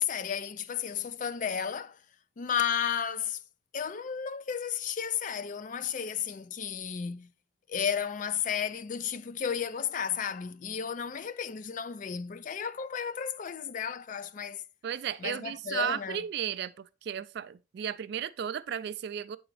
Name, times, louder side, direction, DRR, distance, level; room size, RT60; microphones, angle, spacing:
voice 1, 0.0-2.0 2.4-3.4 3.7-7.3 7.7-14.6 15.2-16.2, left 8 dB, 40° left, 0.4 m, -33 dB
voice 2, 14.8-19.4, right 8 dB, 55° right, 0.3 m, -34 dB
8.8 x 3.9 x 3.1 m
head